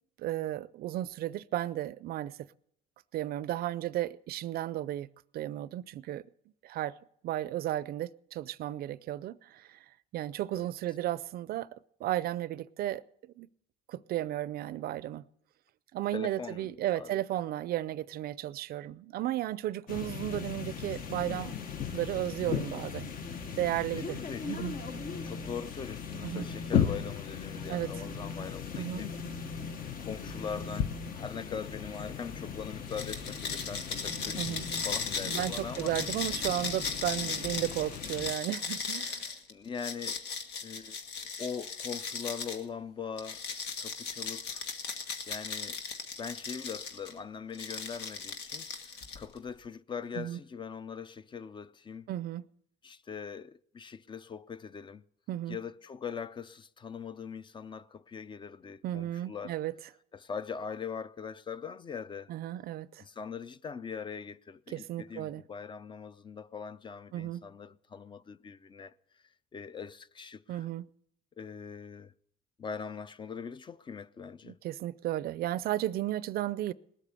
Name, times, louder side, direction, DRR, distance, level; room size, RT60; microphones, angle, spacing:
voice 1, 0.2-2.5 3.1-5.1 5.3-6.2 6.6-7.0 7.2-9.8 10.1-11.7 12.0-13.5 13.9-15.2 15.9-21.5 21.9-23.1 23.6-24.7 26.2-26.5 27.7-27.9 28.8-29.0 34.4-34.7 35.3-39.3 50.2-50.4 52.1-52.4 55.3-55.6 58.8-59.7 62.3-63.0 64.7-65.4 67.1-67.4 70.5-70.9 74.4-76.7, right 13 dB, 65° right, 0.5 m, -34 dB
voice 2, 16.1-17.2 20.0-20.1 23.9-24.7 25.2-29.6 30.0-36.0 39.5-40.2 40.6-41.0 41.4-43.4 43.8-44.6 45.3-45.8 46.2-48.7 49.2-52.1 52.8-55.0 55.5-59.6 60.1-62.3 63.0-68.9 69.5-70.7 71.4-72.1 72.6-74.6, left 6 dB, 30° left, 0.5 m, -41 dB
sound 1, 19.9-38.3, left 8 dB, 55° left, 1.2 m, -37 dB
sound 2, 20.3-37.0, right 1 dB, 5° left, 0.9 m, -48 dB
sound 3, 32.9-42.6 43.2-47.1 47.5-49.4, left 5 dB, 75° left, 1.6 m, -37 dB
19.0 x 8.3 x 7.0 m
cardioid pair, 110°, 17 cm